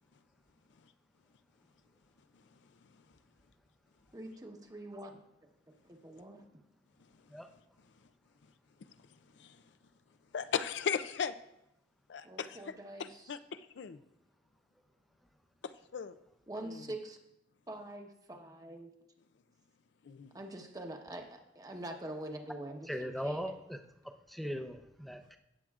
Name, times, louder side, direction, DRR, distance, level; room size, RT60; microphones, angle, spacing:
voice 1, 4.1-5.2 5.8-6.5 12.2-13.3 16.5-17.2 17.7-18.9 20.3-23.5, right 1 dB, 20° right, 3 dB, 1.0 m, -45 dB
voice 2, 10.3-11.3 12.1-12.7 13.0-14.0 15.9-16.1 16.6-16.8 20.0-20.3, left 7 dB, 70° left, 11 dB, 0.4 m, -37 dB
voice 3, 22.9-23.8 24.3-25.4, equal, ahead, 5 dB, 0.6 m, -38 dB
17.0 x 7.5 x 2.4 m, 0.83 s
head